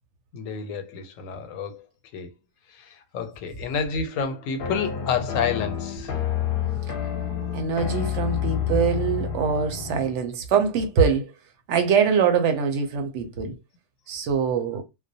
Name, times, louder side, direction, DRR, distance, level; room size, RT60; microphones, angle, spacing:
voice 1, 0.3-1.8 2.1-2.3 3.1-6.1, left 6 dB, 90° left, 1.0 m, -29 dB
sound 1, 4.6-10.2, left 9 dB, 55° left, 0.7 m, -29 dB
voice 2, 7.5-11.3 11.7-13.6 14.1-14.8, right 6 dB, 70° right, 0.8 m, -23 dB
2.3 x 2.0 x 2.6 m
omnidirectional pair, 1.3 m